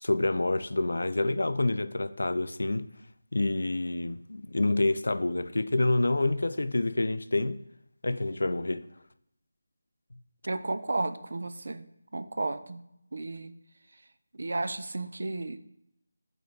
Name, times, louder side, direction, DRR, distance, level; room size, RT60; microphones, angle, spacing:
voice 1, 0.0-2.9 3.3-7.6 8.0-8.9, left 2 dB, 80° left, 0.4 m, -27 dB
voice 2, 10.4-11.9 12.1-12.8 13.1-13.5 14.3-15.6, right 2 dB, 65° right, 0.4 m, -33 dB
8.8 x 3.3 x 3.9 m
figure-of-eight pair, 175°, 0 cm